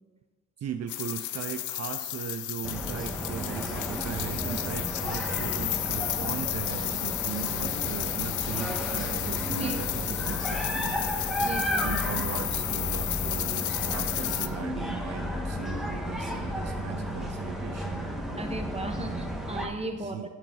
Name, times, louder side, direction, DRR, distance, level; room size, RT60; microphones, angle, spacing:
voice 1, 0.6-11.3 11.8-18.1 19.0-19.3 20.0-20.3, right 9 dB, 60° right, 8 dB, 0.6 m, -38 dB
sound 1, 0.9-14.5, left 14 dB, 85° left, 0.6 m, -32 dB
sound 2, 2.6-19.7, equal, ahead, 1.5 m, -33 dB
voice 2, 11.4-11.9 18.4-20.2, right 2 dB, 20° right, 5 dB, 1.3 m, -36 dB
9.0 x 7.5 x 5.5 m, 1.2 s
cardioid pair, 80°, 29 cm